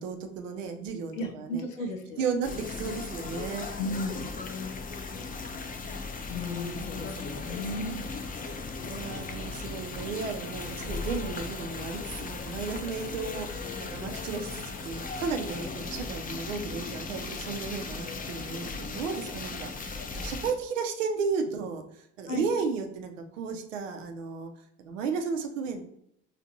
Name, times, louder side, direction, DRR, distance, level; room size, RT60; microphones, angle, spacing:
voice 1, 0.0-1.6 2.2-3.7 6.4-6.7 8.8-24.5 24.8-25.8, right 5 dB, 75° right, 5 dB, 0.7 m, -34 dB
voice 2, 1.1-2.3 3.8-4.3 6.3-8.0 22.3-22.5, left 1 dB, 85° left, 5 dB, 0.5 m, -34 dB
sound 1, 2.4-20.5, left 4 dB, 20° left, 0.5 m, -37 dB
4.5 x 2.5 x 2.6 m, 0.74 s
figure-of-eight pair, 60°, 38 cm